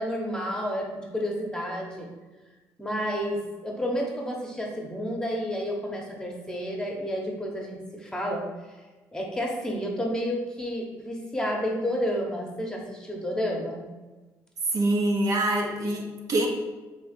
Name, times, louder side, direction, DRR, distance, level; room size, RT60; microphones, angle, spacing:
voice 1, 0.0-2.1 2.8-8.4 9.1-13.9, equal, 10° left, -1 dB, 1.0 m, -30 dB
voice 2, 14.7-16.5, right 1 dB, 55° right, 0 dB, 0.7 m, -25 dB
3.4 x 2.8 x 4.3 m, 1.2 s
supercardioid pair, 70°, 7 cm